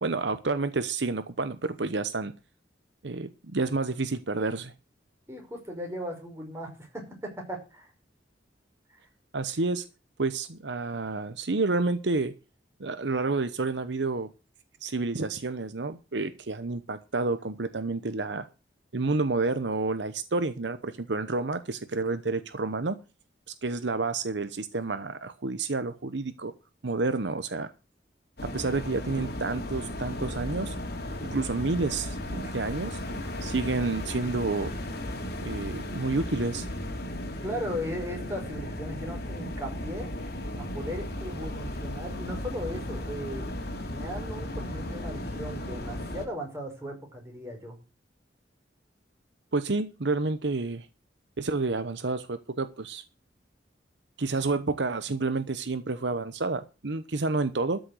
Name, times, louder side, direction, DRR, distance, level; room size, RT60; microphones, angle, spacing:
voice 1, 0.0-2.3 3.0-4.7 9.3-9.8 10.2-12.3 12.8-14.3 14.8-18.5 18.9-23.0 23.5-26.5 26.8-27.7 28.4-30.7 31.2-33.0 33.4-34.7 35.4-36.7 49.5-50.9 51.4-53.0 54.2-57.8, right 3 dB, 70° right, 11 dB, 0.9 m, -29 dB
voice 2, 5.3-7.9 37.4-40.1 40.6-43.5 43.9-47.8, equal, 15° right, 1 dB, 5.4 m, -37 dB
sound 1, 28.4-46.2, left 1 dB, 60° left, 2.7 m, -35 dB
13.0 x 6.4 x 7.9 m, 0.32 s
head